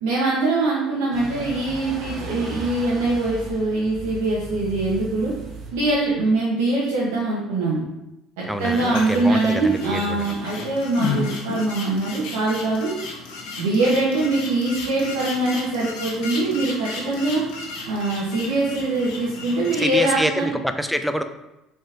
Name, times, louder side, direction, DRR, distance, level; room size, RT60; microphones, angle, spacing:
voice 1, 0.0-5.3 5.7-7.8 8.4-12.9 13.6-17.4 17.9-20.5, right 2 dB, 85° right, -6 dB, 0.9 m, -23 dB
sound 1, 1.1-6.2, right 1 dB, 55° right, 0.9 m, -36 dB
voice 2, 8.4-10.3 19.8-21.2, equal, ahead, 8 dB, 0.4 m, -26 dB
sound 2, 8.6-20.2, left 3 dB, 85° left, 1.0 m, -34 dB
4.0 x 3.7 x 2.5 m, 0.94 s
supercardioid pair, 90°, 0 cm